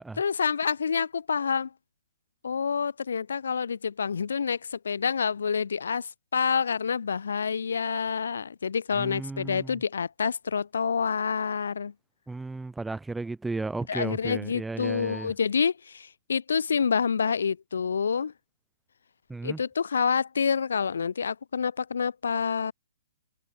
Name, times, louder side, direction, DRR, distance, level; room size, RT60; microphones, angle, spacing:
voice 1, 0.2-1.7 2.4-11.9 13.9-18.3 19.4-22.7, left 6 dB, 85° left, 3.2 m, -28 dB
voice 2, 8.9-9.8 12.3-15.3 19.3-19.6, right 3 dB, 5° right, 4.6 m, -34 dB
hypercardioid pair, 155°, 0 cm